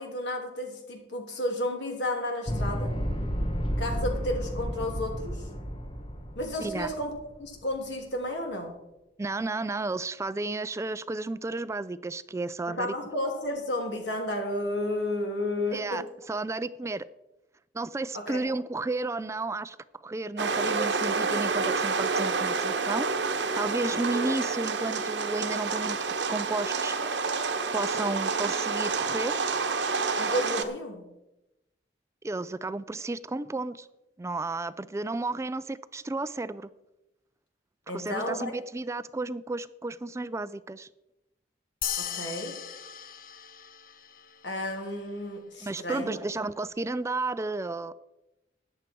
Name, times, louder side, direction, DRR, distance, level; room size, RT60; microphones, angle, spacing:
voice 1, 0.0-3.0 3.8-5.5 6.3-8.8 12.7-16.0 18.1-18.5 30.2-31.1 37.9-38.5 42.0-42.6 44.4-46.2, left 1 dB, 80° left, 2 dB, 3.1 m, -32 dB
sound 1, 2.5-7.7, equal, 30° left, 1.2 m, -32 dB
voice 2, 6.6-6.9 9.2-12.9 15.7-17.1 17.7-23.1 23.5-26.0 26.3-27.0 27.7-29.3 32.2-33.9 34.2-36.7 37.9-40.9 45.6-47.9, right 2 dB, 15° right, 16 dB, 0.3 m, -32 dB
sound 2, 20.4-30.6, right 4 dB, 75° right, 1.1 m, -28 dB
sound 3, 41.8-44.6, left 9 dB, 55° left, 0.8 m, -37 dB
13.5 x 10.0 x 4.6 m, 0.93 s
head